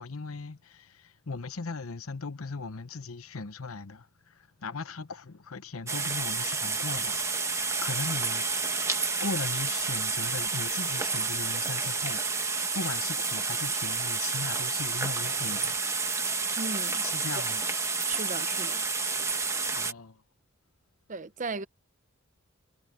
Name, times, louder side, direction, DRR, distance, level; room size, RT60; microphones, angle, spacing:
voice 1, 0.0-8.8 9.2-16.3 17.0-17.6 19.7-20.2, left 4 dB, 80° left, 0.9 m, -38 dB
sound 1, 5.9-19.9, right 4 dB, 15° right, 1.3 m, -30 dB
voice 2, 16.6-17.0 17.3-17.4 18.1-18.8 21.1-21.7, right 3 dB, 35° right, 0.8 m, -36 dB
head